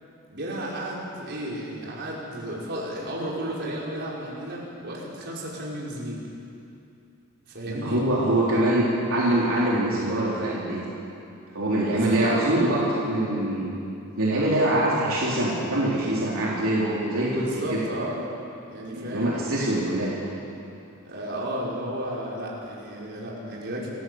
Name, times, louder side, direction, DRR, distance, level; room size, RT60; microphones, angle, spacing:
voice 1, 0.3-6.2 7.5-8.0 11.9-12.7 17.4-18.2 18.7-19.4 21.1-23.9, right 1 dB, 55° right, -4 dB, 5.3 m, -33 dB
voice 2, 7.7-10.8 11.5-13.7 14.2-17.8 18.9-20.1, right 1 dB, 75° right, -6 dB, 3.9 m, -24 dB
28.5 x 14.5 x 8.0 m, 2.7 s
head